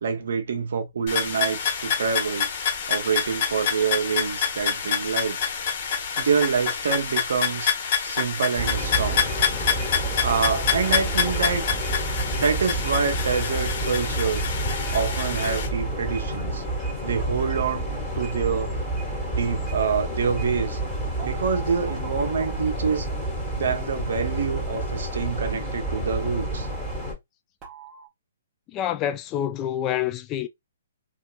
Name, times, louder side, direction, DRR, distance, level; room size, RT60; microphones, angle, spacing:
voice 1, 0.0-2.5 2.9-5.4 6.2-7.7 8.0-9.3 10.2-11.7 12.3-14.4 14.9-16.6 17.0-18.8 19.3-20.8 21.2-23.1 23.5-26.7, right 6 dB, 70° right, 0.7 m, -26 dB
sound 1, 1.1-15.7, left 7 dB, 45° left, 1.1 m, -27 dB
sound 2, 8.6-27.1, right 1 dB, 10° left, 1.4 m, -29 dB
sound 3, 10.4-11.9 14.7-17.1 21.2-24.3 27.6-28.1, right 6 dB, 20° right, 0.8 m, -46 dB
voice 2, 28.7-30.5, left 11 dB, 25° left, 0.3 m, -27 dB
2.7 x 2.4 x 2.2 m
hypercardioid pair, 140°, 0 cm